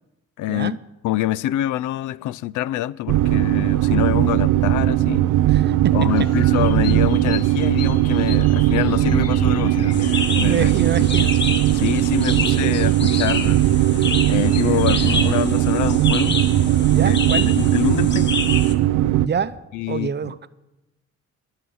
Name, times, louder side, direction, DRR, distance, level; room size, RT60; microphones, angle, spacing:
voice 1, 0.4-0.7 1.0-5.3 5.9-10.7 11.0-11.3 11.7-13.6 14.3-16.4 17.0-17.2 17.4-18.3 19.7-20.3, left 14 dB, 80° left, 0.5 m, -25 dB
sound 1, 3.1-19.3, right 14 dB, 85° right, 0.5 m, -18 dB
voice 2, 5.5-6.3 10.5-11.4 16.9-17.5 19.2-19.6 19.9-20.5, right 7 dB, 35° right, 0.6 m, -26 dB
Bird vocalization bird call bird song, 6.1-15.4, left 9 dB, 55° left, 1.0 m, -40 dB
sound 2, 9.9-18.7, left 5 dB, 35° left, 1.3 m, -28 dB
21.0 x 7.9 x 5.6 m
cardioid pair, 90°, 30 cm